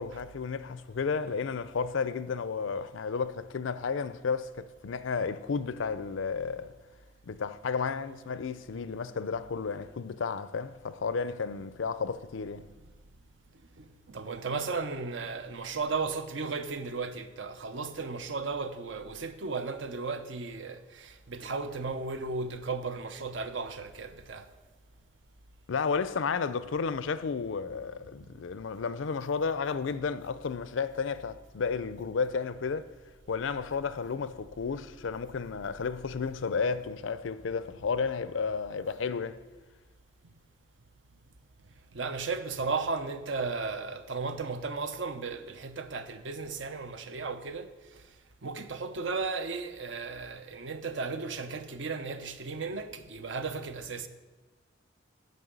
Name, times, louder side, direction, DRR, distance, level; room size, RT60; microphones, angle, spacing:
voice 1, 0.0-6.7 7.3-12.7 25.7-32.9 33.3-39.4, left 5 dB, 75° left, 0.5 m, -32 dB
voice 2, 13.8-24.5 41.9-48.0 48.4-54.1, right 4 dB, 70° right, 0.7 m, -35 dB
9.5 x 5.3 x 8.0 m
head